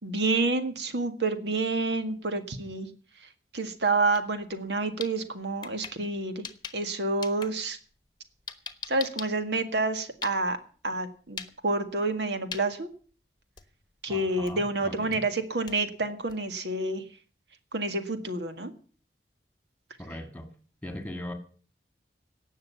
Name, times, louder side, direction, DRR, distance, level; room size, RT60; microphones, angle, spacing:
voice 1, 0.0-2.9 3.5-6.4 6.7-7.8 8.9-10.6 10.8-12.9 14.0-17.0 17.7-18.7, right 2 dB, 75° right, 8 dB, 1.8 m, -28 dB
sound 1, 4.0-4.2 4.6-6.9 7.2-10.7 11.3-11.5 11.9-12.2 12.5-12.7 13.1-13.2 13.6-13.9 14.5-14.7 15.1-16.5, left 7 dB, 25° left, 1.1 m, -41 dB
voice 2, 14.1-15.2 20.0-20.5 20.8-21.3, left 1 dB, 10° left, 7 dB, 1.9 m, -39 dB
17.5 x 6.6 x 8.4 m, 0.42 s
head